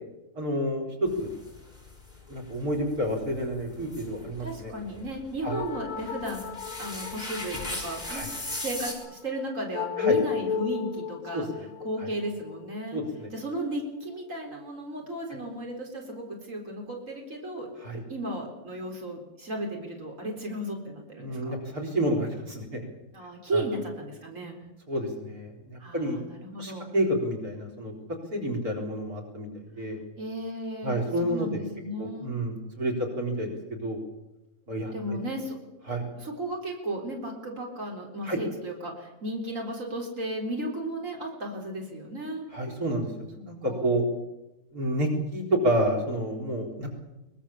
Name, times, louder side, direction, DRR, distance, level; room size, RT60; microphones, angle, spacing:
voice 1, 0.4-1.3 2.3-4.7 5.4-5.5 8.1-8.3 10.0-10.2 11.3-11.6 12.0-12.1 12.9-13.3 17.8-18.0 21.2-22.9 23.5-23.6 24.9-26.2 26.6-27.9 28.3-30.0 30.8-31.6 32.0-34.0 34.7-35.2 35.9-36.0 38.2-38.4 42.5-44.0 44.7-46.9, right 1 dB, 85° right, 3 dB, 4.5 m, -29 dB
sound 1, 1.1-8.9, left 1 dB, 30° left, 4.9 m, -39 dB
voice 2, 4.4-6.4 6.8-11.5 11.8-13.0 13.3-17.7 18.1-21.6 23.1-24.7 25.8-26.9 30.2-32.3 34.9-35.6 36.2-42.5 43.6-43.9, right 1 dB, 60° right, 1 dB, 4.5 m, -35 dB
sound 2, 5.5-14.3, left 7 dB, 60° left, 1.4 m, -34 dB
23.0 x 21.0 x 7.3 m, 0.99 s
omnidirectional pair, 1.5 m